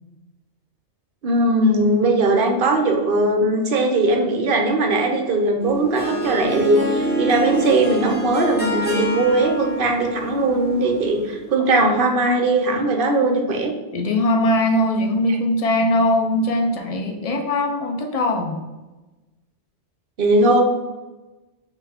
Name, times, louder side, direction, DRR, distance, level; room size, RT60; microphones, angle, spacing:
voice 1, 1.2-13.7 15.3-15.4 20.2-20.6, right 2 dB, 60° right, 3 dB, 0.7 m, -19 dB
Harp, 5.6-11.4, right 1 dB, 10° left, 0.9 m, -27 dB
voice 2, 13.9-18.6, left 1 dB, 60° left, 4 dB, 0.4 m, -20 dB
5.5 x 2.5 x 3.4 m, 1.1 s
omnidirectional pair, 1.2 m